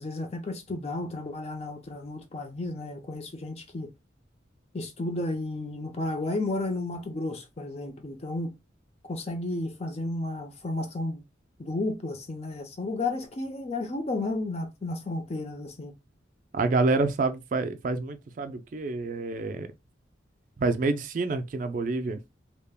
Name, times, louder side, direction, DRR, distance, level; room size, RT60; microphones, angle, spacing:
voice 1, 0.0-3.9 4.7-8.6 9.0-11.2 11.6-15.9, left 2 dB, 35° left, 0.5 m, -32 dB
voice 2, 16.5-19.7 20.6-22.2, right 3 dB, 45° right, 0.3 m, -27 dB
3.3 x 2.1 x 2.2 m
head